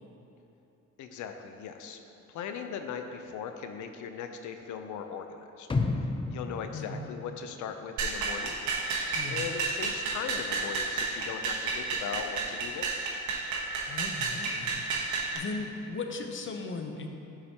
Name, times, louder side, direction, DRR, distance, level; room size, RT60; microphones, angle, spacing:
voice 1, 1.0-2.0 2.3-5.7 6.3-8.6 9.2-13.2, left 7 dB, 75° left, 6 dB, 0.6 m, -39 dB
sound 1, 5.7-7.9 8.2-8.3, left 3 dB, 15° left, 0.4 m, -32 dB
voice 2, 6.7-7.1 9.1-9.5 13.9-14.8 15.3-17.1, left 3 dB, 40° left, 4 dB, 0.8 m, -37 dB
sound 2, 8.0-15.4, right 4 dB, 75° right, 1.2 m, -31 dB
11.5 x 5.0 x 2.9 m, 2.8 s
cardioid pair, 90°, 30 cm